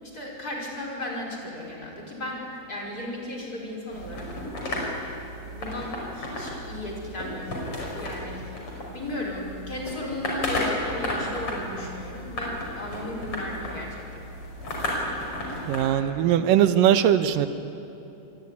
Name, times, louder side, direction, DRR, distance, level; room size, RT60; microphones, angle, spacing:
voice 1, 0.0-4.3 5.5-7.7 8.0-8.6 8.9-14.2, left 1 dB, 25° left, -2 dB, 5.5 m, -35 dB
sound 1, 3.9-15.9, left 1 dB, 40° left, 6.4 m, -33 dB
voice 2, 15.7-17.5, right 10 dB, 90° right, 11 dB, 2.7 m, -20 dB
27.0 x 22.0 x 9.9 m, 3.0 s
omnidirectional pair, 3.8 m